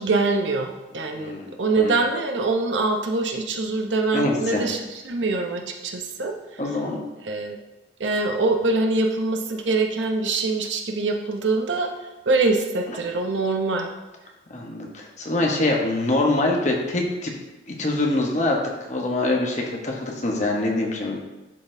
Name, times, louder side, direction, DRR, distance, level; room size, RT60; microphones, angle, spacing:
voice 1, 0.0-6.6 7.2-7.6 8.0-11.9 12.3-13.9, right 3 dB, 80° right, 3 dB, 0.7 m, -24 dB
voice 2, 1.2-2.0 4.1-4.6 6.6-7.0 14.5-17.3 17.7-18.6 18.9-21.2, left 2 dB, 40° left, 0 dB, 1.0 m, -24 dB
10.5 x 4.0 x 2.6 m, 1.1 s
head